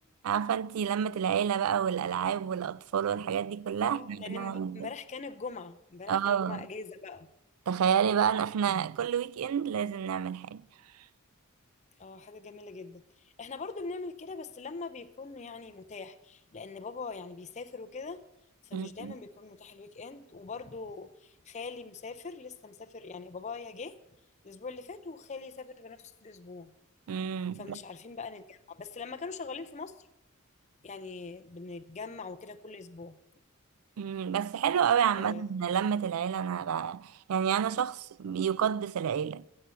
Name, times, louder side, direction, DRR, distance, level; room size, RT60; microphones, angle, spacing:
voice 1, 0.2-4.9 6.1-6.7 7.7-10.6 18.7-19.1 27.1-27.8 34.0-39.4, right 8 dB, 80° right, 0.4 m, -29 dB
voice 2, 3.8-7.3 12.0-18.2 18.6-24.0 24.4-26.7 27.5-30.1 30.8-33.2 35.2-35.5, left 4 dB, 30° left, 0.6 m, -42 dB
15.0 x 7.6 x 6.9 m
head